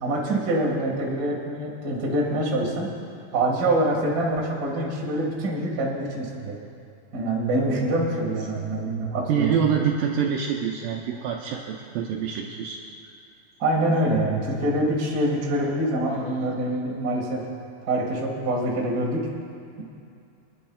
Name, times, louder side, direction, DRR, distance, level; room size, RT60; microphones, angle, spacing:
voice 1, 0.0-2.9 3.3-6.6 7.1-9.5 13.6-17.4 17.8-19.3, right 1 dB, 40° right, -2 dB, 1.5 m, -25 dB
voice 2, 9.3-12.8, right 7 dB, 80° right, 0 dB, 2.1 m, -26 dB
27.0 x 10.0 x 2.3 m, 2.5 s
omnidirectional pair, 4.3 m